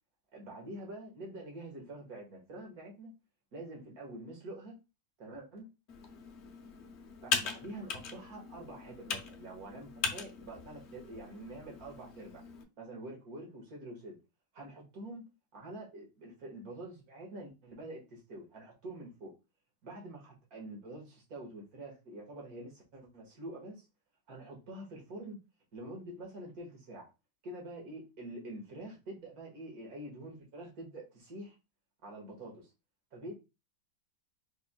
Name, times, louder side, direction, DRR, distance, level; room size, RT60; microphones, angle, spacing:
voice 1, 0.3-3.1 3.5-4.8 5.2-5.7 7.2-12.4 12.8-14.2 14.5-15.2 15.5-19.3 19.8-23.9 24.3-25.4 25.7-27.1 27.4-31.6 32.0-32.7 33.1-33.3, right 1 dB, 55° right, 2.1 m, -46 dB
Computer keyboard, 5.9-12.6, left 5 dB, 60° left, 0.7 m, -40 dB
4.5 x 4.5 x 2.3 m
omnidirectional pair, 1.9 m